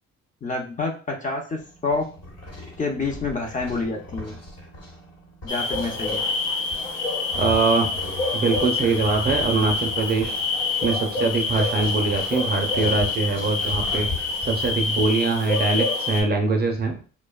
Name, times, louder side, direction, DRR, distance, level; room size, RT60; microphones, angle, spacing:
voice 1, 0.4-2.1 2.8-4.3 5.4-6.2, left 3 dB, 25° left, 2 dB, 0.5 m, -28 dB
sound 1, 1.6-14.7, left 1 dB, 55° left, 1.1 m, -38 dB
sound 2, 5.5-16.2, left 3 dB, 85° left, 0.8 m, -26 dB
voice 2, 7.3-7.9 8.3-10.3 10.8-14.1 14.5-17.0, right 4 dB, 35° right, 3 dB, 0.5 m, -23 dB
2.6 x 2.1 x 2.3 m, 0.38 s
cardioid pair, 90°, 30 cm